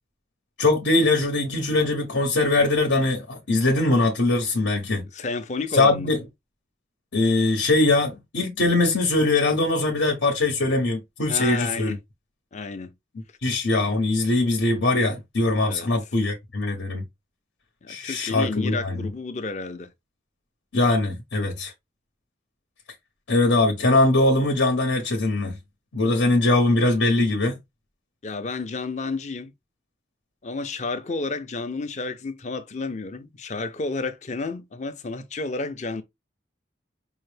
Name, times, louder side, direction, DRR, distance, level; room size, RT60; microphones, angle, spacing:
voice 1, 0.6-5.0 5.7-6.2 7.1-12.0 13.4-17.0 17.9-19.0 20.7-21.7 23.3-25.5 25.9-27.6, left 2 dB, 80° left, 1.0 m, -21 dB
voice 2, 5.1-6.1 11.3-12.0 12.5-12.9 15.6-15.9 17.8-19.9 28.2-29.5 30.4-36.0, left 3 dB, 40° left, 0.5 m, -31 dB
5.4 x 2.1 x 3.3 m
head